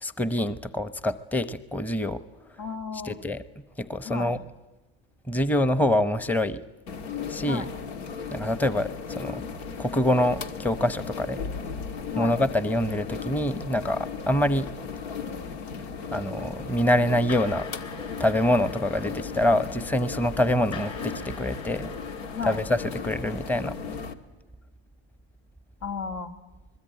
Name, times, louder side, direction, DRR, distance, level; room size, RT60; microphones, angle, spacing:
voice 1, 0.0-2.2 3.0-3.4 3.8-4.4 5.3-6.6 7.3-7.7 8.3-9.4 9.8-11.4 12.2-14.7 16.1-17.7 18.2-21.9 22.4-23.8, left 1 dB, 5° left, 14 dB, 0.9 m, -25 dB
voice 2, 2.6-3.2 4.0-4.3 7.5-7.7 12.1-12.4 22.3-22.6 25.8-26.3, left 5 dB, 70° left, 5 dB, 2.7 m, -33 dB
sound 1, 6.9-24.1, left 5 dB, 90° left, 1.8 m, -36 dB
sound 2, 17.3-24.1, left 5 dB, 50° left, 6.6 m, -45 dB
25.5 x 21.5 x 9.1 m, 1.1 s
supercardioid pair, 100°, 32 cm